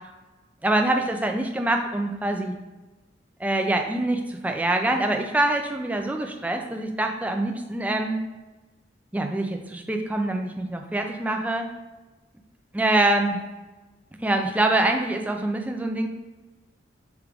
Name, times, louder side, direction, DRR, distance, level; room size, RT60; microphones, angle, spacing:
voice 1, 0.6-2.5 3.4-8.2 9.1-11.7 12.7-13.4 14.2-16.1, right 2 dB, 10° right, 3 dB, 0.3 m, -25 dB
4.6 x 2.4 x 3.4 m, 1.1 s
head